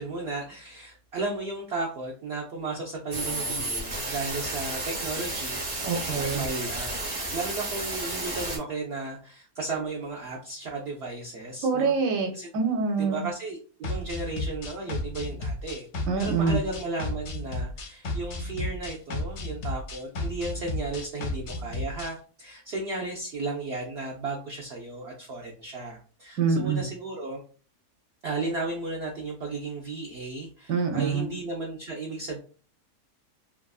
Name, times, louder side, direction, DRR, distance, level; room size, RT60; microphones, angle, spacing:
voice 1, 0.0-5.6 6.2-7.0 7.3-11.9 12.3-12.5 13.0-15.9 16.2-27.4 28.2-32.4, right 3 dB, 90° right, -1 dB, 0.5 m, -34 dB
sound 1, 3.1-8.6, right 2 dB, 45° right, 0.5 m, -32 dB
voice 2, 5.8-6.4 11.6-13.2 16.1-16.6 26.4-26.9 30.7-31.3, right 5 dB, 70° right, 3 dB, 0.9 m, -25 dB
sound 2, 13.8-22.1, left 2 dB, 65° left, 0.7 m, -33 dB
2.7 x 2.4 x 2.3 m, 0.40 s
omnidirectional pair, 1.7 m